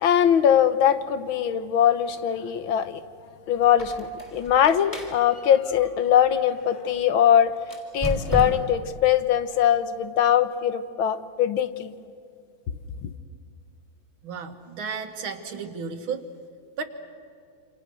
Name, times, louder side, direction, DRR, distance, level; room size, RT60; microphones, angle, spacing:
voice 1, 0.0-3.0 3.5-7.5 7.9-11.9 13.0-13.1, left 9 dB, 85° left, 12 dB, 1.9 m, -21 dB
Squeak, 3.6-6.8 7.6-8.9, equal, 15° left, 3.9 m, -34 dB
voice 2, 14.2-16.2 16.8-16.9, right 5 dB, 90° right, 6 dB, 2.5 m, -33 dB
28.0 x 27.0 x 6.3 m, 2.3 s
omnidirectional pair, 2.2 m